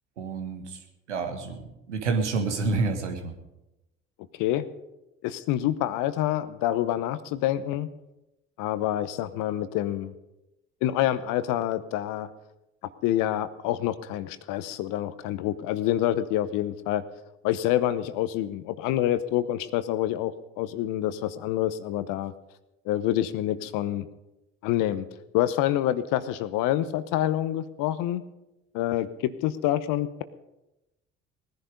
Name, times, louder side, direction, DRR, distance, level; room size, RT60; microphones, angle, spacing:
voice 1, 0.2-3.3, right 4 dB, 90° right, 5 dB, 1.6 m, -29 dB
voice 2, 5.2-7.9 8.6-10.1 10.8-12.3 13.0-17.0 17.4-22.3 22.9-24.1 24.6-25.1 25.3-28.2 28.7-30.2, left 13 dB, 65° left, 14 dB, 1.0 m, -27 dB
19.0 x 10.5 x 5.3 m, 0.95 s
hypercardioid pair, 55°, 34 cm